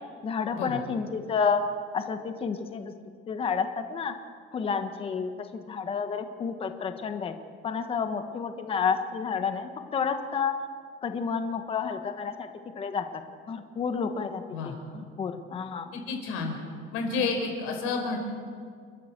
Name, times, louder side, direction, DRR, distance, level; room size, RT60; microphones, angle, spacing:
voice 1, 0.2-1.6 1.9-2.9 3.3-4.1 4.5-7.3 7.6-10.5 11.0-12.5 12.8-13.2 13.5-15.9, left 6 dB, 25° left, 7 dB, 1.3 m, -30 dB
voice 2, 15.9-16.5 16.9-18.2, left 4 dB, 90° left, 3 dB, 5.1 m, -30 dB
29.5 x 13.0 x 7.5 m, 2.1 s
cardioid pair, 165°, 21 cm